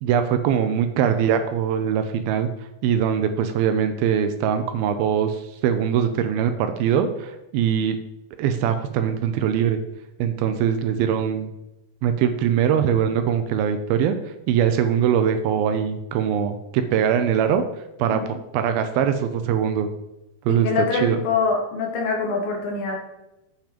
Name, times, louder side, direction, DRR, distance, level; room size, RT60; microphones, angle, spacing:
voice 1, 0.0-2.5 2.8-8.0 8.4-9.8 10.2-11.5 12.0-14.2 14.5-17.6 18.0-18.2 18.5-19.9 20.5-20.7 21.0-21.2, right 8 dB, 80° right, 8 dB, 2.4 m, -22 dB
voice 2, 20.5-23.0, left 4 dB, 65° left, 1 dB, 2.9 m, -24 dB
9.0 x 5.8 x 5.1 m, 0.93 s
omnidirectional pair, 4.5 m